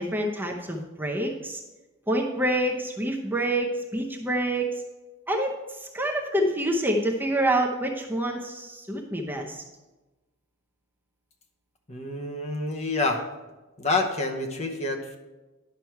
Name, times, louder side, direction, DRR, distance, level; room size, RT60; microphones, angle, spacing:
voice 1, 0.0-1.6 2.1-4.8 5.3-5.5 5.8-9.6, right 1 dB, 10° right, 0 dB, 0.7 m, -27 dB
voice 2, 11.9-13.2 13.8-15.2, left 2 dB, 30° left, 3 dB, 0.9 m, -28 dB
10.5 x 6.0 x 4.6 m, 1.1 s
head